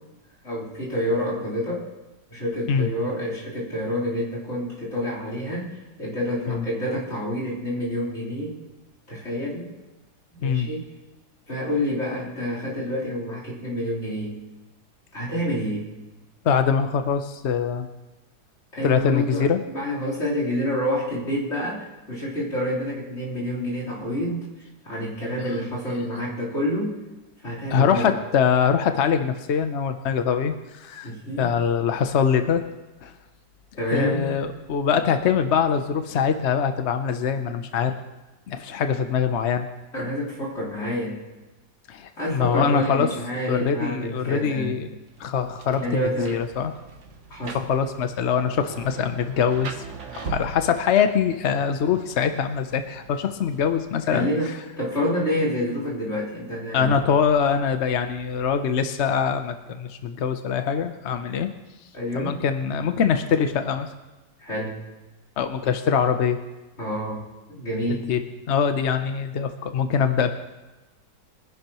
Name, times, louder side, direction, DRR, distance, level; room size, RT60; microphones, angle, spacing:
voice 1, 0.4-1.9 2.3-8.5 9.1-9.7 10.4-10.9 11.5-14.4 15.1-15.9 18.7-24.5 24.8-27.0 27.4-28.1 31.0-31.5 33.7-34.3 39.9-41.2 42.2-44.7 45.8-46.4 47.3-47.6 54.1-57.0 61.9-62.4 64.4-64.8 66.8-68.1, equal, 35° left, -7 dB, 4.1 m, -28 dB
voice 2, 16.4-17.9 18.8-19.6 27.7-31.1 31.4-32.6 33.0-33.1 33.9-37.9 38.5-39.7 41.9-43.1 43.5-44.9 45.2-46.7 47.5-49.8 50.1-54.3 56.7-61.5 62.1-63.9 65.4-66.4 67.9-68.2 68.5-70.3, left 7 dB, 65° left, 8 dB, 0.6 m, -23 dB
Rain, 45.1-54.1, right 5 dB, 45° right, 1.2 m, -41 dB
23.5 x 11.0 x 3.0 m, 1.1 s
omnidirectional pair, 2.1 m